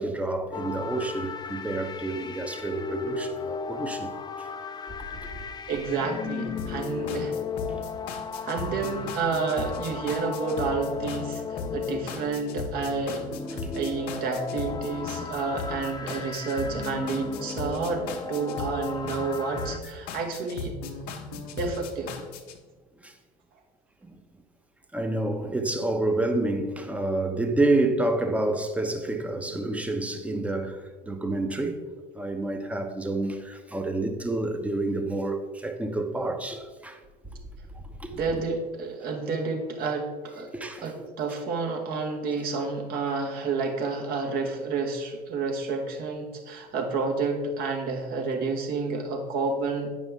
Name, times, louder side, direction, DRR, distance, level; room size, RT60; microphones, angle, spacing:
voice 1, 0.0-4.1 21.3-21.4 23.0-23.1 24.1-24.2 24.9-30.8 31.1-31.8 32.1-37.0 37.7-38.4 40.5-40.9, right 2 dB, 5° right, 0.8 m, -28 dB
sound 1, 0.5-19.8, left 5 dB, 20° left, 0.6 m, -36 dB
voice 2, 5.7-7.4 8.4-13.2 13.5-20.7 21.6-22.1 38.1-40.5 40.8-49.9, right 4 dB, 50° right, 1.4 m, -30 dB
sound 2, 6.6-22.6, left 4 dB, 60° left, 0.9 m, -37 dB
8.9 x 5.2 x 3.5 m
hypercardioid pair, 70°, 19 cm